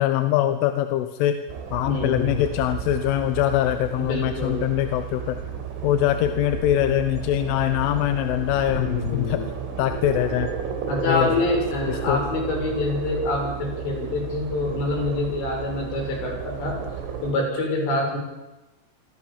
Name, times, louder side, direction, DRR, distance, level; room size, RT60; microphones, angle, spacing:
voice 1, 0.0-1.4 1.7-5.4 5.8-9.4 9.8-10.5 11.1-11.5 11.9-12.2, left 13 dB, 90° left, 9 dB, 3.6 m, -23 dB
sound 1, 1.5-17.3, right 7 dB, 85° right, 6.1 m, -33 dB
voice 2, 1.9-2.4 4.0-4.6 8.7-9.5 10.9-16.8 17.2-18.2, left 2 dB, 65° left, 1 dB, 9.0 m, -26 dB
27.0 x 24.5 x 7.2 m, 1.0 s
omnidirectional pair, 5.5 m